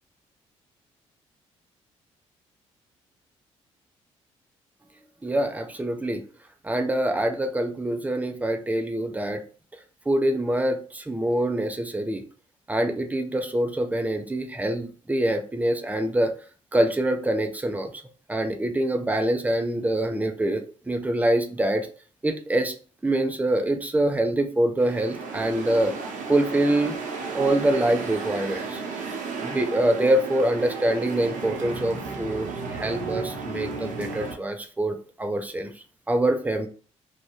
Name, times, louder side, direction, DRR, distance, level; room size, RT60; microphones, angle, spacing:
voice 1, 5.2-6.2 6.6-9.4 10.1-12.2 12.7-16.3 16.7-17.9 18.3-21.9 22.2-22.7 23.0-25.9 26.3-28.8 29.4-35.7 36.1-36.7, right 1 dB, 10° right, 6 dB, 0.5 m, -25 dB
sound 1, 24.8-34.3, right 4 dB, 55° right, 0.7 m, -33 dB
2.5 x 2.2 x 3.4 m, 0.40 s
hypercardioid pair, 45°, 16 cm